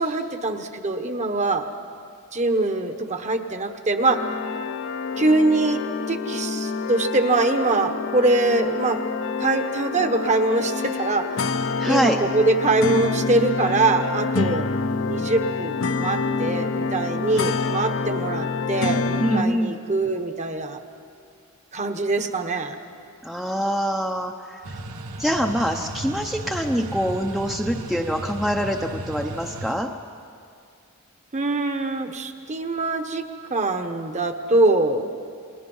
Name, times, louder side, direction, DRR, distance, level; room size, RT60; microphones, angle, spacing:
voice 1, 0.0-1.7 2.3-4.2 5.2-5.8 6.1-9.0 9.4-11.3 11.8-14.7 15.0-20.8 21.7-22.8 31.3-33.2 33.5-35.1, right 2 dB, 30° right, 7 dB, 1.2 m, -23 dB
sound 1, 4.1-19.4, left 4 dB, 60° left, 0.7 m, -27 dB
voice 2, 11.8-12.2 19.2-19.8 23.2-24.6 25.2-29.9, equal, ahead, 2 dB, 0.7 m, -24 dB
sound 2, 24.6-29.8, right 2 dB, 85° right, 1.4 m, -35 dB
28.5 x 21.0 x 5.6 m, 2.3 s
head